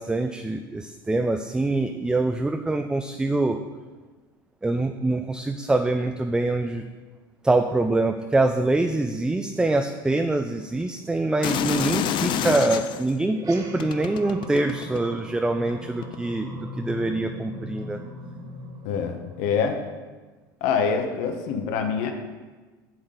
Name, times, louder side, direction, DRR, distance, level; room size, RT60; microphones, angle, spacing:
voice 1, 0.0-3.6 4.6-6.8 7.4-16.5 16.8-18.0, right 2 dB, 5° right, 6 dB, 0.4 m, -24 dB
sound 1, 11.4-13.1 13.8-15.2 16.0-16.2, left 9 dB, 45° left, 0.5 m, -27 dB
sound 2, 13.3-20.0, equal, 35° right, 1.8 m, -39 dB
voice 2, 18.8-19.8 20.6-22.1, left 6 dB, 65° left, 5 dB, 1.2 m, -25 dB
7.9 x 7.7 x 3.9 m, 1.3 s
supercardioid pair, 95°, 11 cm